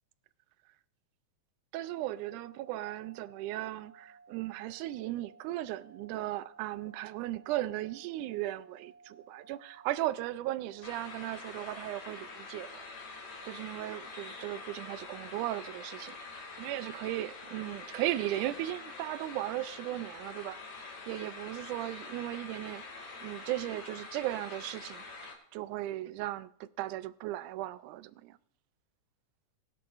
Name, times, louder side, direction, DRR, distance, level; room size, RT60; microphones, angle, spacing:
sound 1, 1.7-11.2, right 4 dB, 5° left, 5.3 m, -58 dB
voice 1, 1.7-12.9 13.4-22.8 23.2-28.4, right 15 dB, 90° right, 2.1 m, -37 dB
sound 2, 10.8-25.3, left 3 dB, 90° left, 3.9 m, -46 dB
20.0 x 11.5 x 2.5 m
omnidirectional pair, 3.5 m